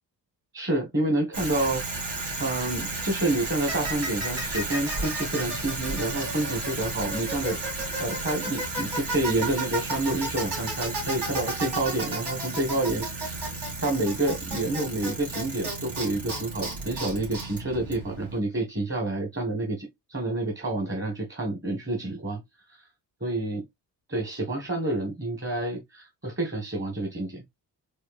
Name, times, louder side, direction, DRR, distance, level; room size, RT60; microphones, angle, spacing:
voice 1, 0.5-1.8 2.4-7.6 8.0-22.4 23.2-23.6 24.1-27.4, right 2 dB, 30° right, 1.5 m, -29 dB
Bicycle, 1.3-18.4, right 2 dB, 70° right, 2.5 m, -32 dB
4.5 x 3.1 x 2.4 m
cardioid pair, 65°, 41 cm